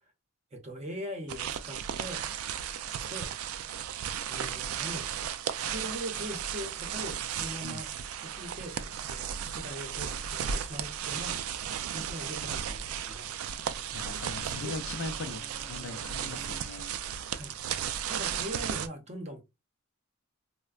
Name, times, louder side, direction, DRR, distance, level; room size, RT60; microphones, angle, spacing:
voice 1, 0.5-2.2 3.1-3.3 4.2-7.9 8.2-11.6 11.9-13.3 14.6-14.7 17.4-17.5 18.1-19.4, equal, 30° right, 0.6 m, -41 dB
sound 1, 1.3-18.9, right 8 dB, 75° right, 0.3 m, -35 dB
Bowed string instrument, 13.5-17.2, right 1 dB, 10° left, 0.5 m, -55 dB
voice 2, 13.9-15.4 15.7-17.0, left 3 dB, 60° left, 0.4 m, -40 dB
4.3 x 2.1 x 2.3 m
head